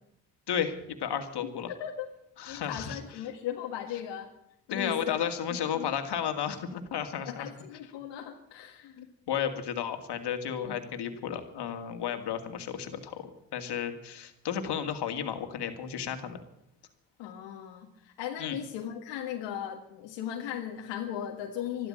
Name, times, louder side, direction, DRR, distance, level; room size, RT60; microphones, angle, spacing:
voice 1, 0.5-1.7 2.4-3.3 4.7-7.5 7.8-7.9 9.0-16.4 18.4-18.6, left 8 dB, 65° left, 7 dB, 2.3 m, -33 dB
voice 2, 1.7-2.1 2.5-4.3 4.7-5.2 5.7-5.9 7.2-9.0 17.2-21.9, left 10 dB, 90° left, 1 dB, 1.7 m, -37 dB
12.5 x 12.5 x 8.8 m, 0.75 s
supercardioid pair, 60°, 43 cm